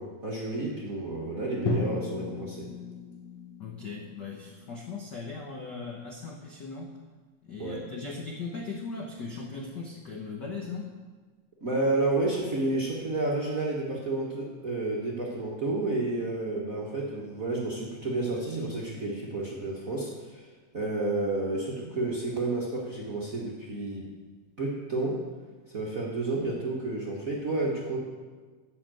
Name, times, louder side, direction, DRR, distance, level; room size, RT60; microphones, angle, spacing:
voice 1, 0.0-2.7 7.6-7.8 11.6-20.1 20.7-24.1 24.6-25.2 25.7-28.0, right 2 dB, 45° right, -4 dB, 1.1 m, -30 dB
Drum, 1.7-5.7, left 4 dB, 65° left, 1.1 m, -36 dB
voice 2, 3.6-6.9 7.4-10.9, left 4 dB, 85° left, 0 dB, 0.9 m, -38 dB
13.5 x 5.9 x 7.6 m, 1.4 s
omnidirectional pair, 3.7 m